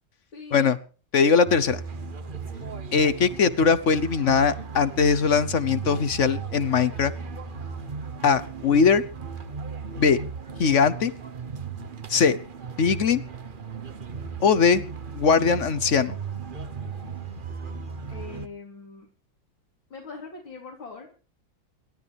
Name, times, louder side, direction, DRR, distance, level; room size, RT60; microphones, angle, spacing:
voice 1, 0.3-0.7 18.1-19.1 19.9-21.1, left 4 dB, 85° left, -1 dB, 4.1 m, -41 dB
voice 2, 1.1-1.8 2.9-7.1 8.2-9.0 10.0-10.2 10.6-11.1 12.1-12.4 12.8-13.2 14.4-14.8 15.1-16.2, left 5 dB, 50° left, 14 dB, 1.0 m, -20 dB
sound 1, 1.5-18.5, right 5 dB, 35° right, 1.0 m, -36 dB
28.5 x 13.0 x 3.5 m, 0.38 s
omnidirectional pair, 2.1 m